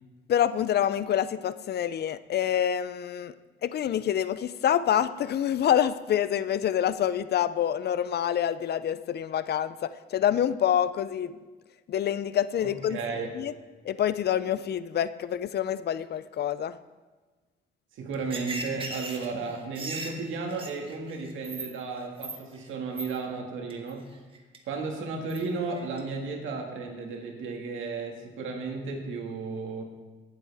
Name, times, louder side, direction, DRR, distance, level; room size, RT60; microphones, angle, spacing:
voice 1, 0.3-3.3 3.6-11.4 11.9-13.0 13.3-13.5 13.8-16.8, left 10 dB, 55° left, 15 dB, 0.5 m, -27 dB
voice 2, 12.6-13.3 17.9-24.1 24.7-29.8, right 4 dB, 80° right, 2 dB, 2.0 m, -34 dB
sound 1, 18.1-21.7 22.0-22.7 23.0-23.1 23.7-23.9 24.3-24.6 25.3-25.4 25.7-26.0, right 2 dB, 25° right, 1.6 m, -37 dB
18.0 x 7.7 x 3.5 m, 1.3 s
cardioid pair, 90°, 20 cm